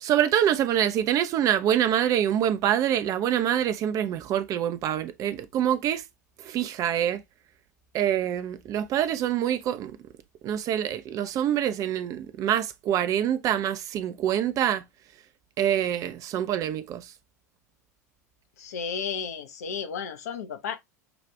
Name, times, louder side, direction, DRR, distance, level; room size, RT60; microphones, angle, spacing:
voice 1, 0.0-6.0 6.4-7.2 7.9-10.0 10.4-14.8 15.6-17.1, right 10 dB, 40° right, 0.6 m, -25 dB
voice 2, 18.6-20.8, left 6 dB, 65° left, 0.8 m, -33 dB
6.0 x 2.5 x 3.3 m
figure-of-eight pair, 80°, 9 cm